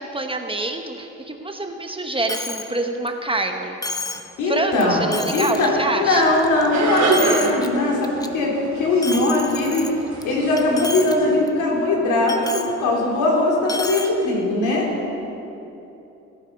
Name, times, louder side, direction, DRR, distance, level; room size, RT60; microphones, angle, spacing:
voice 1, 0.0-3.8 4.4-6.2, right 2 dB, 15° right, 4 dB, 1.1 m, -26 dB
Coin (dropping), 2.3-2.7 3.1-3.2 3.8-4.3 4.8-4.9 5.1-5.7 6.1-6.7 7.0-7.7 8.0-8.3 9.0-10.2 10.6-11.1 11.5-11.6 12.3-12.7 13.6-14.1, left 2 dB, 10° left, 0.9 m, -30 dB
voice 2, 4.4-5.0 5.3-9.9 10.2-14.9, left 2 dB, 80° left, -3 dB, 3.5 m, -20 dB
sound 1, 6.0-11.4, right 3 dB, 65° right, 2.6 m, -27 dB
19.0 x 9.0 x 5.3 m, 2.9 s
cardioid pair, 90°, 30 cm